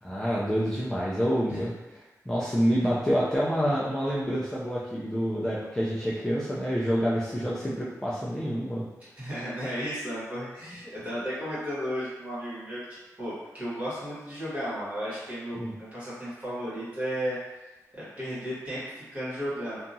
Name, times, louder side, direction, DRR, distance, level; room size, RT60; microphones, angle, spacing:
voice 1, 0.0-8.8 10.8-10.9 15.5-15.7, equal, 10° left, -7 dB, 0.4 m, -28 dB
voice 2, 9.2-17.4 17.9-19.8, equal, 25° right, -10 dB, 1.4 m, -34 dB
2.8 x 2.3 x 2.6 m, 1.1 s
wide cardioid pair, 135°, 6 cm